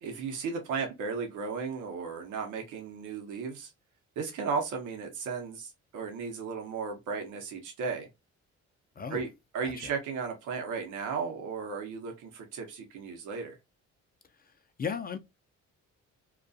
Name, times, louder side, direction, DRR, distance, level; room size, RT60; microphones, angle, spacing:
voice 1, 0.0-3.7 4.2-8.1 9.1-9.3 9.5-13.6, right 5 dB, 80° right, 0.8 m, -35 dB
voice 2, 14.8-15.2, left 6 dB, 30° left, 0.4 m, -35 dB
2.3 x 2.3 x 2.5 m
cardioid pair, 90°, 30 cm